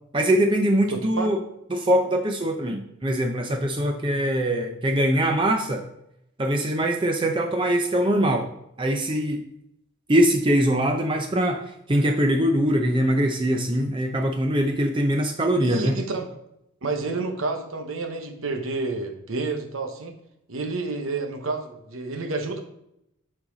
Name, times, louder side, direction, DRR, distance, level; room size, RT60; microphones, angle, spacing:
voice 1, 0.1-1.4 1.7-5.8 6.4-8.5 8.8-9.4 10.1-11.6 11.9-16.0, right 1 dB, 25° right, 4 dB, 0.5 m, -22 dB
voice 2, 0.9-1.3 15.6-16.3 16.8-20.1 20.5-22.6, right 3 dB, 80° right, 4 dB, 0.9 m, -29 dB
8.8 x 4.0 x 3.8 m, 0.80 s
head